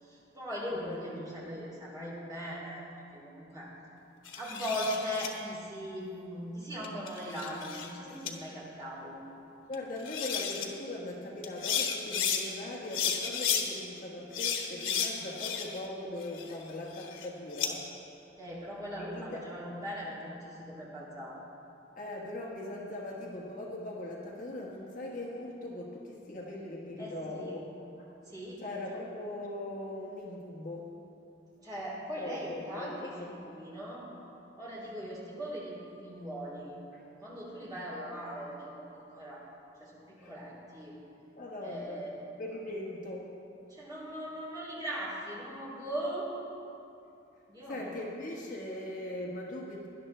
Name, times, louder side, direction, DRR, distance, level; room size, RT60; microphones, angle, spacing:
voice 1, 0.0-2.8 3.1-3.7 4.4-9.2 18.4-21.4 27.0-27.5 28.3-28.6 31.6-34.1 34.6-36.8 37.2-39.4 39.8-41.0 41.6-42.1 43.7-46.3 47.5-48.0, equal, 20° right, -6 dB, 3.0 m, -39 dB
voice 2, 0.8-1.2 9.7-17.8 19.0-19.4 22.0-27.6 28.0-28.1 28.6-30.9 32.2-32.9 33.2-33.6 36.9-37.0 40.2-40.3 41.4-42.0 42.4-43.2 47.7-49.9, left 1 dB, 40° left, -3 dB, 1.3 m, -40 dB
sound 1, 4.3-5.3 6.8-7.9 8.3-8.4 9.7-9.8 10.0-10.7 11.4-12.4 12.9-13.6 14.3-15.9 16.2-17.7, left 7 dB, 85° left, 1.2 m, -33 dB
18.0 x 11.0 x 3.3 m, 2.7 s
head